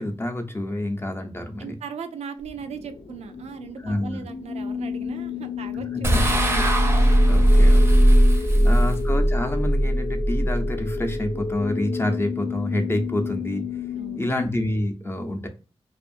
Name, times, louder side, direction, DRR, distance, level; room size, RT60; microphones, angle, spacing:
voice 1, 0.0-1.8 3.8-4.2 5.9-6.2 6.5-6.6 7.3-8.1 8.4-13.6 14.2-15.5, left 1 dB, 20° left, 5 dB, 0.6 m, -28 dB
voice 2, 1.6-6.7 8.4-9.0 13.9-14.3, right 6 dB, 85° right, 7 dB, 0.4 m, -38 dB
sound 1, 2.4-14.2, left 6 dB, 80° left, 0.7 m, -32 dB
sound 2, 6.0-11.4, right 1 dB, 20° right, 0.6 m, -18 dB
2.6 x 2.4 x 2.4 m, 0.34 s
wide cardioid pair, 80°, 11 cm